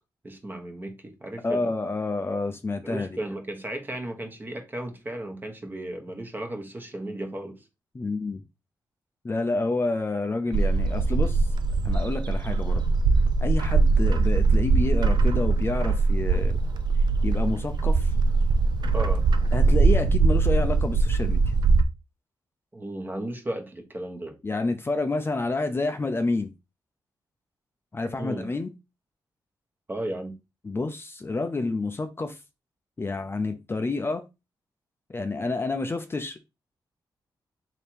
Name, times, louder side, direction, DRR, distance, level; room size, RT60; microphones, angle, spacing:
voice 1, 0.2-1.7 2.8-7.6 18.9-19.2 22.7-24.4 28.2-28.5 29.9-30.4, right 1 dB, 25° right, 1.1 m, -35 dB
voice 2, 1.4-3.2 7.9-8.4 9.2-11.4 11.8-12.8 13.4-16.6 17.2-18.1 19.5-21.4 24.4-26.5 27.9-28.7 30.6-32.4 33.0-34.2 35.1-36.4, left 3 dB, 30° left, 0.5 m, -29 dB
Bird, 10.5-21.8, right 4 dB, 60° right, 0.4 m, -22 dB
3.4 x 2.9 x 4.4 m
cardioid pair, 75°, 8 cm